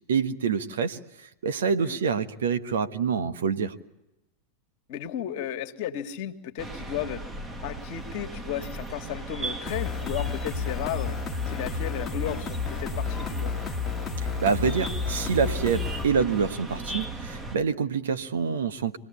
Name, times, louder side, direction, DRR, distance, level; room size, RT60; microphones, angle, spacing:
voice 1, 0.1-1.0 1.4-3.7 14.4-19.0, right 6 dB, 60° right, 10 dB, 1.4 m, -26 dB
voice 2, 4.9-7.2 7.6-11.2 11.5-13.5, left 10 dB, 45° left, 6 dB, 1.9 m, -34 dB
sound 1, 6.6-17.6, right 2 dB, 15° right, 1.7 m, -37 dB
sound 2, 9.7-16.1, left 6 dB, 20° left, 1.7 m, -31 dB
26.5 x 20.0 x 8.4 m, 0.93 s
figure-of-eight pair, 90°, 0 cm